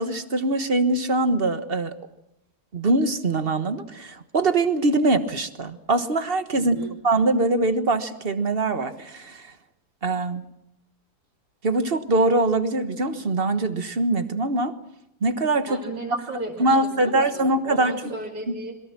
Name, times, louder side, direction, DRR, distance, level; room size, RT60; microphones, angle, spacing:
voice 1, 0.0-1.9 2.7-9.5 10.0-10.4 11.6-14.7 15.2-15.8 16.6-17.9, right 2 dB, 35° right, 10 dB, 1.5 m, -23 dB
voice 2, 6.5-6.9 15.7-18.7, right 2 dB, 85° right, -3 dB, 3.3 m, -35 dB
26.5 x 22.5 x 6.1 m, 0.85 s
omnidirectional pair, 1.7 m